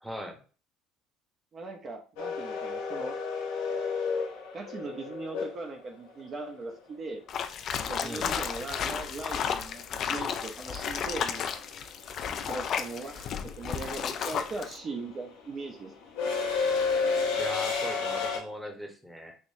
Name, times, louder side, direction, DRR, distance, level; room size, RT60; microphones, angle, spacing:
voice 1, 0.0-0.4 8.0-8.4 17.4-19.4, left 1 dB, ahead, 3 dB, 0.9 m, -39 dB
voice 2, 1.5-3.2 4.5-7.2 7.7-11.6 12.4-15.9, right 3 dB, 40° right, 2 dB, 0.6 m, -39 dB
sound 1, 2.2-6.2 8.6-8.7 10.0-10.3 10.6-18.4, left 4 dB, 80° left, 0.9 m, -31 dB
sound 2, 7.3-14.8, left 7 dB, 50° left, 0.4 m, -33 dB
3.5 x 2.9 x 2.7 m, 0.37 s
supercardioid pair, 90°, 0 cm